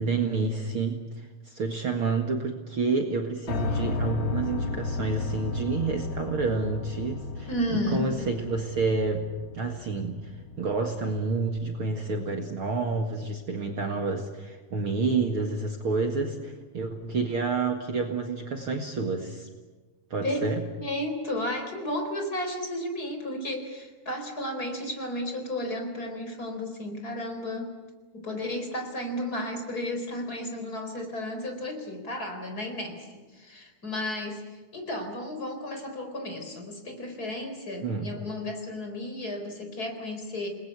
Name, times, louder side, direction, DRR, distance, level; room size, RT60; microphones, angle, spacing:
voice 1, 0.0-9.3 9.5-19.5 20.1-20.6 37.8-38.1, right 4 dB, 45° right, 3 dB, 2.4 m, -29 dB
Piano, 3.5-11.5, left 4 dB, 50° left, 2.8 m, -34 dB
voice 2, 7.5-8.1 20.2-20.5 20.8-27.7 28.1-40.5, left 1 dB, 30° left, 5 dB, 4.6 m, -33 dB
29.0 x 21.0 x 8.2 m, 1.3 s
omnidirectional pair, 3.7 m